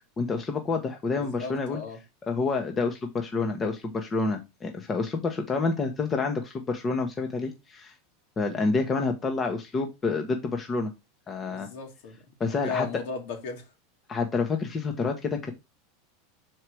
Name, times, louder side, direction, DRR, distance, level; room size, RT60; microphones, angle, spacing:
voice 1, 0.2-1.8 2.2-7.9 8.4-10.9 11.3-11.7 12.4-13.0 14.1-15.5, left 4 dB, 20° left, 1.1 m, -28 dB
voice 2, 1.1-2.0 11.4-12.2 12.5-13.6, left 4 dB, 70° left, 2.5 m, -36 dB
5.7 x 4.6 x 4.8 m
supercardioid pair, 130°, 0 cm